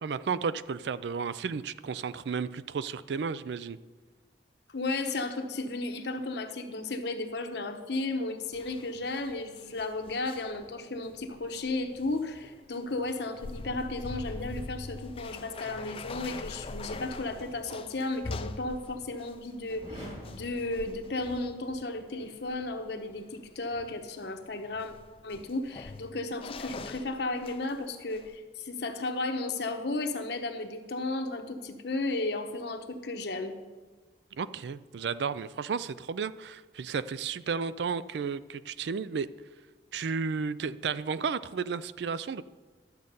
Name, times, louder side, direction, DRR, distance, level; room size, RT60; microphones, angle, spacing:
voice 1, 0.0-3.8 34.3-39.3 39.9-42.4, right 5 dB, 65° right, 16 dB, 0.4 m, -33 dB
voice 2, 4.7-24.9 25.2-33.5, left 2 dB, 65° left, 6 dB, 1.0 m, -34 dB
sound 1, 8.5-27.9 28.1-28.4, left 3 dB, 30° left, 0.4 m, -44 dB
sound 2, 19.7-21.7, equal, 40° right, 2.5 m, -47 dB
12.0 x 7.6 x 5.4 m, 1.4 s
head